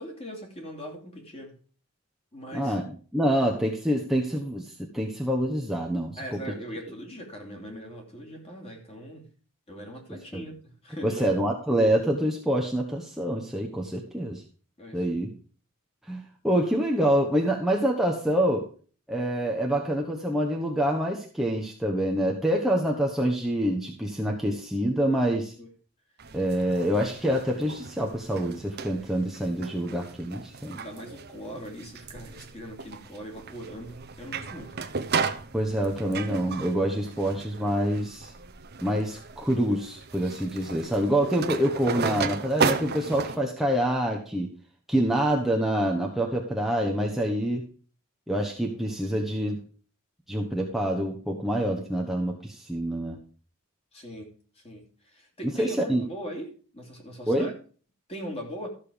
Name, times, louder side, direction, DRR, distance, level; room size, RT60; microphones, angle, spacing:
voice 1, 0.0-1.6 2.3-2.8 6.2-9.3 9.7-11.4 14.8-15.4 25.6-25.7 30.7-34.8 53.9-57.5 58.1-58.7, equal, 30° left, 1 dB, 3.0 m, -40 dB
voice 2, 2.5-2.8 3.1-6.2 10.3-10.4 11.0-14.4 14.9-15.3 16.1-18.7 19.1-25.5 26.3-30.8 35.5-38.3 38.8-44.5 44.9-47.6 48.3-49.6 50.3-53.2 55.4-56.0 57.3-57.5, right 1 dB, ahead, -1 dB, 1.1 m, -26 dB
sound 1, 26.2-43.4, right 5 dB, 50° right, 0.9 m, -35 dB
13.5 x 6.7 x 5.2 m, 0.41 s
head